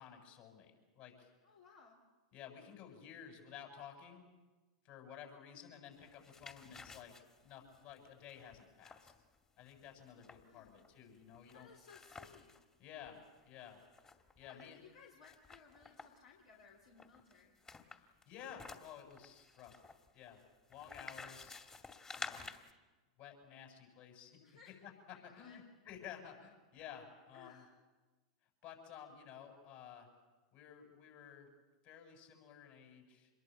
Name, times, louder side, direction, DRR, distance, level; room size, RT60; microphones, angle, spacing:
voice 1, 0.0-1.3 2.3-4.3 4.8-7.1 7.4-9.1 9.6-11.7 12.8-13.8 14.4-14.8 18.0-19.8 20.1-20.4 20.7-21.6 22.2-22.5 23.2-24.4 24.8-27.6 28.6-30.1 30.5-31.5 31.8-33.3, left 8 dB, 50° left, 3 dB, 7.9 m, -53 dB
voice 2, 1.4-2.0 5.5-5.7 10.5-10.8 11.5-12.6 14.4-17.6 24.4-24.8 25.1-25.7 27.3-27.7, left 5 dB, 75° left, -1 dB, 3.8 m, -61 dB
sound 1, 6.0-12.6 13.1-13.2 13.4-14.6 15.2-16.3 17.0-22.7, left 4 dB, 20° left, 2.4 m, -52 dB
27.0 x 22.0 x 8.0 m, 1.2 s
hypercardioid pair, 100°, 3 cm